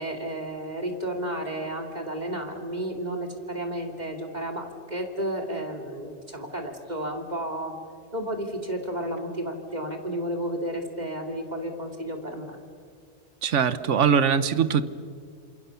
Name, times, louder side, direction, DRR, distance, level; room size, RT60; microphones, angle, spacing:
voice 1, 0.0-7.7 8.1-12.6, right 1 dB, 35° right, 3 dB, 2.9 m, -32 dB
voice 2, 13.4-14.8, right 7 dB, 85° right, 14 dB, 1.3 m, -21 dB
28.0 x 27.0 x 7.0 m, 2.1 s
omnidirectional pair, 1.2 m